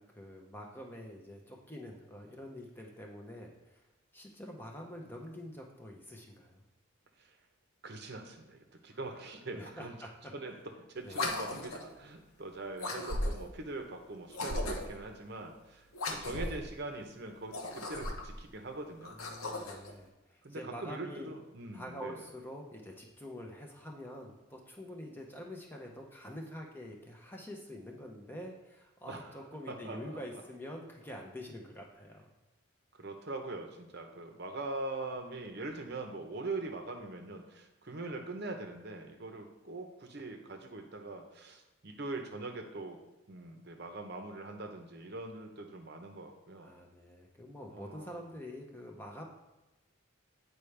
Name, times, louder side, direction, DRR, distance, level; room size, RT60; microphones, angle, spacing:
voice 1, 0.0-3.8 4.1-6.6 8.9-9.0 9.5-10.3 11.0-11.4 19.1-21.3 21.7-32.3 46.6-49.2, equal, 10° left, 0 dB, 0.7 m, -46 dB
voice 2, 7.8-9.9 10.3-10.5 10.9-19.2 19.4-19.6 20.4-22.2 29.1-29.4 29.8-30.2 33.0-43.0 43.3-46.7 47.7-48.3, right 2 dB, 50° right, 4 dB, 0.8 m, -42 dB
sound 1, 11.1-11.9 12.8-13.6 14.3-15.0 15.9-16.7 17.4-18.4 19.0-19.9, left 1 dB, 85° left, 0.9 m, -36 dB
8.4 x 4.6 x 3.3 m, 1.1 s
head